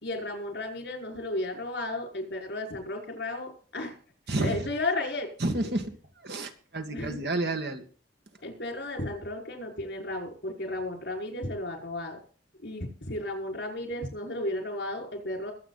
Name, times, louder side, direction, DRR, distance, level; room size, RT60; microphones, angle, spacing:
voice 1, 0.0-4.0 4.4-5.3 6.9-7.3 8.4-12.2 12.6-15.5, left 2 dB, 70° left, 2 dB, 5.4 m, -34 dB
voice 2, 4.3-4.6 5.4-5.9 6.2-7.8, right 2 dB, 65° right, 6 dB, 2.0 m, -30 dB
21.5 x 8.5 x 4.1 m, 0.43 s
head